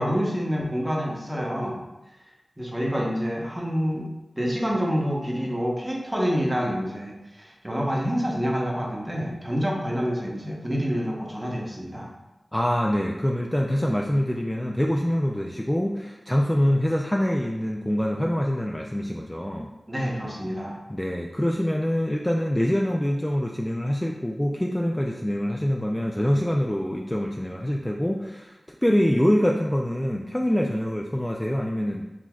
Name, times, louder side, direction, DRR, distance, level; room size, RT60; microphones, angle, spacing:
voice 1, 0.0-1.8 2.6-4.1 4.4-12.1 19.9-20.8, equal, 15° right, -2 dB, 1.0 m, -27 dB
voice 2, 12.5-19.7 20.9-28.6 28.8-32.0, equal, 15° left, 0 dB, 0.4 m, -25 dB
6.1 x 2.8 x 2.3 m, 1.0 s
cardioid pair, 45°, 0 cm